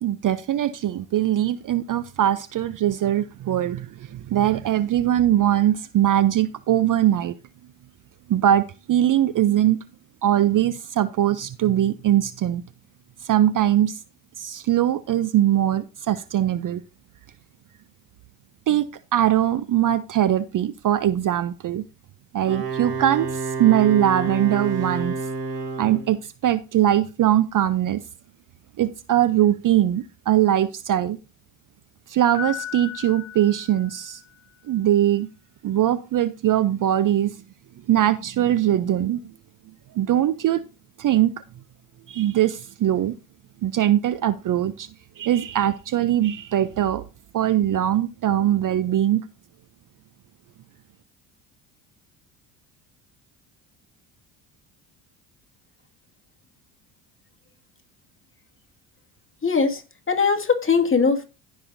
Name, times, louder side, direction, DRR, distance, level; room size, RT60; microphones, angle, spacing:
voice 1, 0.0-7.4 8.3-9.8 10.2-12.6 13.2-14.0 14.4-16.8 18.7-18.9 19.1-21.8 22.3-25.2 25.8-28.0 28.8-31.2 32.1-34.2 34.7-35.3 35.6-37.3 37.9-39.2 39.9-40.6 41.0-41.3 42.1-43.2 43.6-44.9 45.2-47.0 47.3-49.2, right 12 dB, 40° right, 0.6 m, -21 dB
Wind instrument woodwind instrument, 22.4-26.1, right 4 dB, 60° right, 4.4 m, -29 dB
Piano, 32.3-34.4, left 9 dB, 10° right, 3.9 m, -36 dB
voice 2, 59.4-61.3, left 5 dB, 25° left, 2.0 m, -21 dB
15.0 x 6.2 x 2.6 m
hypercardioid pair, 65°, 49 cm